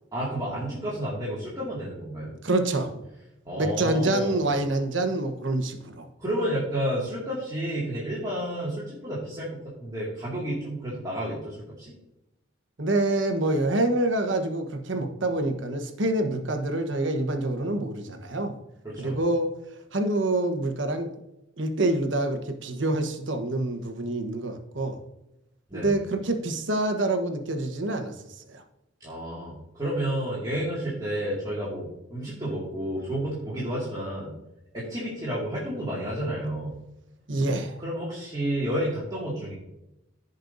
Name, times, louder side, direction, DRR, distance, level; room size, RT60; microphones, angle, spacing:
voice 1, 0.1-2.4 3.5-4.5 6.2-11.9 18.8-19.2 25.7-25.9 29.0-34.3 34.7-36.7 37.8-39.5, right 1 dB, 20° right, -8 dB, 2.2 m, -31 dB
voice 2, 2.4-2.9 3.6-6.1 12.8-18.6 19.0-19.5 19.9-21.1 21.6-25.0 25.7-28.6 37.3-37.8, right 2 dB, 65° right, 6 dB, 1.2 m, -26 dB
15.5 x 5.5 x 2.7 m, 0.89 s
head